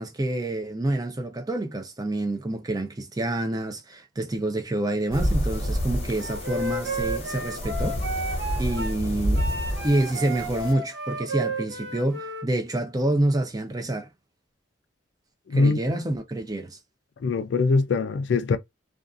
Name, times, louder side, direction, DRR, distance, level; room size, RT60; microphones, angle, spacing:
voice 1, 0.0-8.0 8.3-9.4 9.8-14.1 15.5-16.8, right 1 dB, 20° right, 0.5 m, -27 dB
sound 1, 5.1-10.7, equal, 35° left, 0.8 m, -29 dB
Wind instrument woodwind instrument, 6.2-9.0 9.4-12.5, right 2 dB, 60° right, 0.7 m, -32 dB
voice 2, 15.5-15.8 17.2-18.6, left 4 dB, 65° left, 0.3 m, -22 dB
2.5 x 2.4 x 2.4 m
head